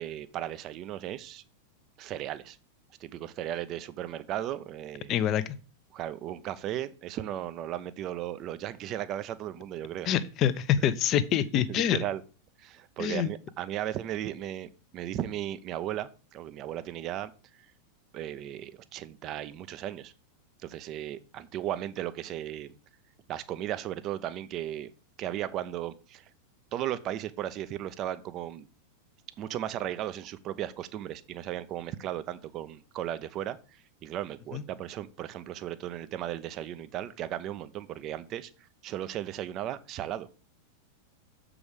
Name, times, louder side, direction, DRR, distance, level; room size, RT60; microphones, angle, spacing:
voice 1, 0.0-1.4 2.0-2.6 3.0-5.1 5.9-10.1 11.7-12.2 12.6-17.3 18.1-20.1 20.6-22.7 23.3-24.9 25.2-26.2 26.7-28.7 29.4-33.6 34.0-38.5 38.8-40.3, right 12 dB, 35° right, 14 dB, 0.7 m, -36 dB
voice 2, 5.1-5.6 10.1-12.0 13.0-13.3 34.5-34.6, left 10 dB, 35° left, 14 dB, 0.7 m, -26 dB
7.2 x 4.9 x 6.6 m, 0.35 s
figure-of-eight pair, 90°, 0 cm